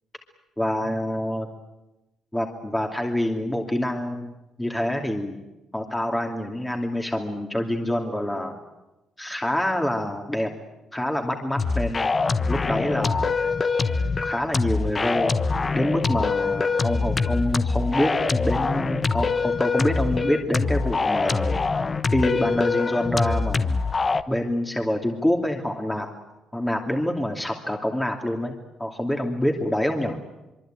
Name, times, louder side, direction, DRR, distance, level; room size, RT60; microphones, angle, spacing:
voice 1, 0.6-1.5 2.3-4.3 4.6-5.4 5.7-8.6 9.2-10.5 10.9-12.1 12.5-13.4 14.2-15.3 15.7-21.7 22.1-23.8 24.3-26.1 26.5-30.2, left 1 dB, 10° left, 2 dB, 2.7 m, -26 dB
sound 1, 11.6-24.2, left 4 dB, 35° left, 1.2 m, -24 dB
24.5 x 23.5 x 9.0 m, 1.0 s
cardioid pair, 90°, 0 cm